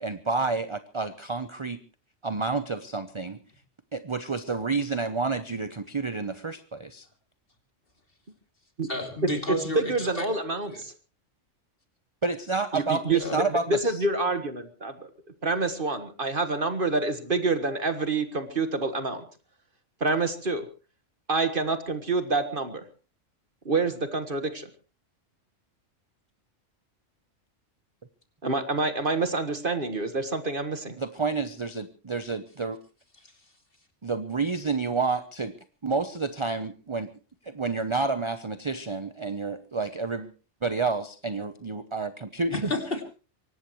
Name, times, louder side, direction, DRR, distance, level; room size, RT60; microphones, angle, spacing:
voice 1, 0.0-1.8 2.2-3.4 3.9-7.1 12.2-14.0 31.0-32.8 34.0-35.5 35.8-37.1 37.4-40.3 40.6-42.7, right 4 dB, 30° right, 11 dB, 0.8 m, -29 dB
voice 2, 8.9-10.3 10.7-10.8 13.2-13.4 42.5-43.0, left 1 dB, 45° left, 4 dB, 3.1 m, -31 dB
voice 3, 9.7-10.9 12.7-15.1 15.4-19.2 20.0-20.7 21.3-22.8 23.7-24.7 28.4-31.0, right 3 dB, 45° right, 9 dB, 1.7 m, -27 dB
24.0 x 18.5 x 3.1 m, 0.35 s
omnidirectional pair, 1.3 m